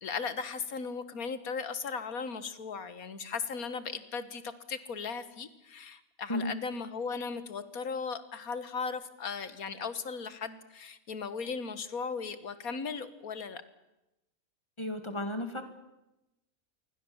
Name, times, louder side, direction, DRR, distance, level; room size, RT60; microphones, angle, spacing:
voice 1, 0.0-13.6, left 5 dB, 85° left, 13 dB, 2.0 m, -37 dB
voice 2, 14.8-15.6, left 1 dB, 20° left, 7 dB, 2.6 m, -33 dB
27.0 x 23.5 x 7.2 m, 0.93 s
omnidirectional pair, 1.5 m